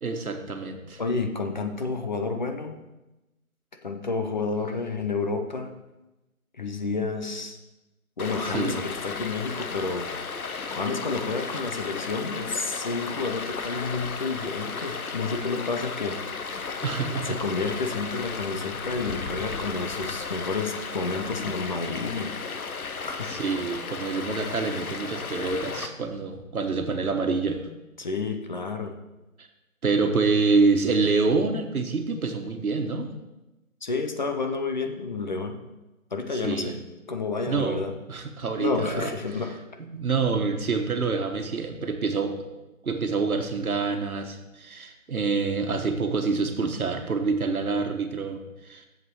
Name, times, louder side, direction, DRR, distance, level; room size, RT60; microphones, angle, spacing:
voice 1, 0.0-1.0 8.5-8.8 16.8-17.4 23.3-27.7 29.4-29.5 29.8-33.1 36.3-36.8 37.5-39.1 39.8-42.3 42.8-48.9, right 4 dB, 85° right, 5 dB, 1.4 m, -27 dB
voice 2, 1.0-2.8 3.8-5.8 6.6-7.6 8.2-10.1 10.7-16.2 16.5-16.6 17.2-22.3 23.0-23.4 28.0-28.9 33.8-35.6 36.1-36.8 37.1-37.9 38.6-39.6, left 4 dB, 35° left, 6 dB, 0.7 m, -30 dB
Stream, 8.2-25.9, left 5 dB, 85° left, 1.0 m, -34 dB
8.5 x 7.3 x 4.7 m, 1.0 s
hypercardioid pair, 160°, 42 cm